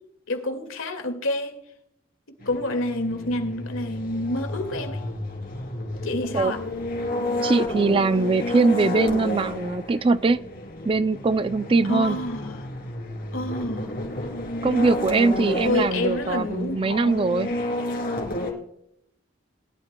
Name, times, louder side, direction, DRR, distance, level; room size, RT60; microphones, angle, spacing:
voice 1, 0.3-1.6 2.5-5.0 6.0-6.7 11.9-12.7 13.3-14.0 15.6-17.2, left 1 dB, 85° left, 2.0 m, -28 dB
sound 1, 2.4-18.5, left 1 dB, 50° left, 2.9 m, -31 dB
voice 2, 7.4-10.4 10.8-12.2 14.6-17.5, right 3 dB, 25° right, 0.3 m, -21 dB
20.0 x 12.0 x 2.2 m
head